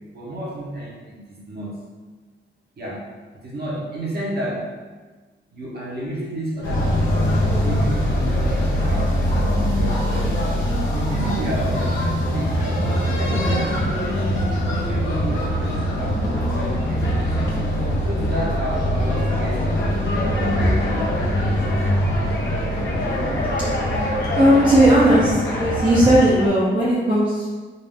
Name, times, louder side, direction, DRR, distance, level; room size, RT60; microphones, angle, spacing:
voice 1, 0.1-1.7 2.8-3.0 3.3-4.7 5.5-9.1 9.8-10.4 10.9-12.9 13.2-14.5 14.9-17.8 18.1-19.9 20.3-21.7, right 1 dB, 50° right, -5 dB, 1.2 m, -31 dB
sound 1, 6.6-26.5, equal, 70° left, 1.1 m, -22 dB
voice 2, 24.3-27.5, right 1 dB, 20° right, -9 dB, 0.8 m, -16 dB
3.9 x 2.7 x 3.7 m, 1.4 s
wide cardioid pair, 140°, 20 cm